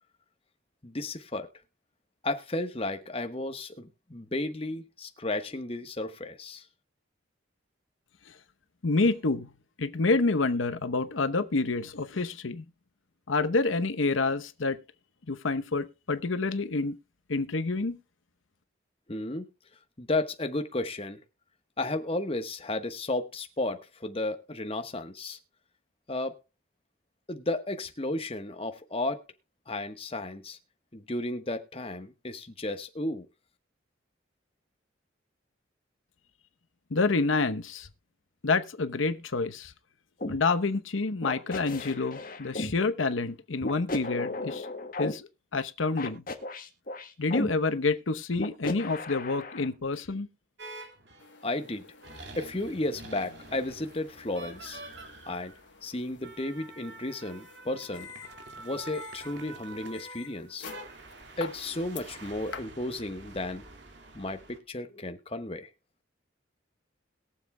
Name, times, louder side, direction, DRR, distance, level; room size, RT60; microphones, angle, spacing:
voice 1, 0.8-1.5 2.2-6.6 19.1-19.5 20.0-21.2 21.8-25.4 26.1-26.4 27.3-29.2 29.7-30.6 30.9-33.3 51.4-51.8 52.4-54.8 55.3-55.5 55.8-58.1 58.6-60.7 61.4-63.6 64.1-65.7, left 2 dB, 30° left, 1.2 m, -33 dB
voice 2, 8.8-9.5 9.8-12.6 13.3-14.8 15.3-17.0 17.3-18.0 36.9-37.9 38.4-39.7 40.3-44.7 45.0-46.2 47.2-50.3, left 3 dB, 90° left, 0.9 m, -28 dB
sound 1, 40.2-40.4 41.2-42.7 43.6-45.1 46.0-47.5 48.3-49.7, left 2 dB, 45° left, 1.8 m, -34 dB
sound 2, 50.6-51.4 52.0-64.6, right 2 dB, 65° right, 2.3 m, -47 dB
sound 3, 51.2-62.6, left 6 dB, 70° left, 1.3 m, -49 dB
22.0 x 7.4 x 2.2 m
head